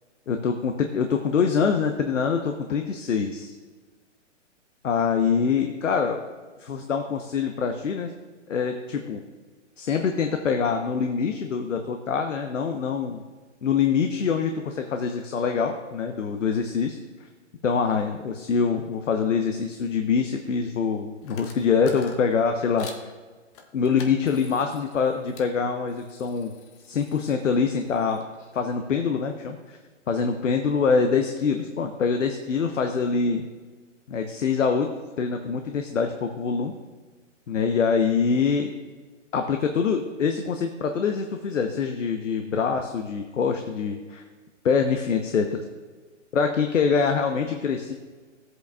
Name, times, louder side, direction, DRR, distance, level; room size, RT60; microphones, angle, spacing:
voice 1, 0.3-3.5 4.8-6.2 6.6-8.1 8.5-9.2 9.8-13.2 13.6-17.0 17.6-23.1 23.7-26.5 26.8-28.2 28.5-29.8 30.1-33.4 34.1-34.9 35.2-36.7 37.5-38.7 39.3-44.2 44.6-45.6 46.3-47.9, left 6 dB, 75° left, 5 dB, 0.9 m, -24 dB
sound 1, 21.2-23.1 23.5-25.5 25.9-28.5, left 5 dB, 25° left, 0.7 m, -46 dB
13.5 x 7.9 x 2.3 m, 1.4 s
hypercardioid pair, 135°, 38 cm